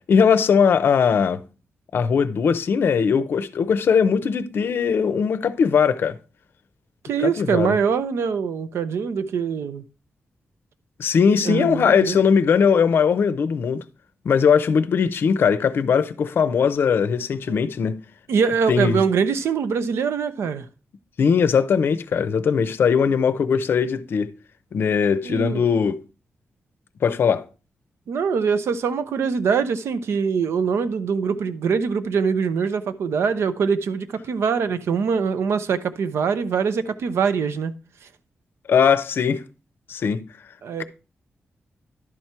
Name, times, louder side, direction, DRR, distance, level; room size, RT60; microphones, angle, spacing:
voice 1, 0.0-1.4 1.9-6.1 7.2-7.7 11.0-13.8 14.2-18.0 18.7-19.0 21.2-24.3 24.7-26.0 27.0-27.4 38.7-39.4 39.9-40.2, left 6 dB, 60° left, 0.5 m, -20 dB
voice 2, 7.0-9.8 11.4-12.2 17.5-17.6 18.3-20.7 25.2-25.7 28.1-37.7 40.6-40.8, right 6 dB, 85° right, 0.6 m, -23 dB
11.0 x 4.4 x 4.5 m
wide cardioid pair, 175°, 4 cm